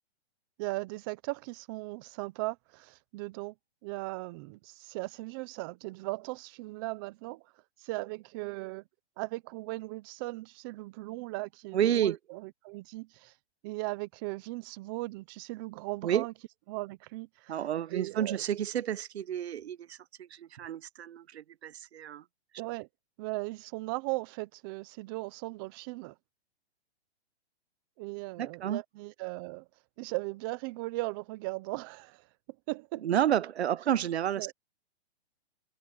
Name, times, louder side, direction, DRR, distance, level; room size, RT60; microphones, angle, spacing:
voice 1, 0.6-3.5 3.8-7.5 7.8-8.8 9.2-13.3 13.6-16.3 16.7-17.6 17.9-18.4 22.6-22.9 23.2-26.2 28.0-29.7 30.0-32.3 32.7-33.1 34.4-34.5, right 23 dB, 20° right, 0.6 m, -38 dB
voice 2, 11.7-12.2 16.0-16.3 17.5-22.2 28.4-28.8 33.0-34.5, right 10 dB, 75° right, 1.0 m, -30 dB
hypercardioid pair, 155°, 33 cm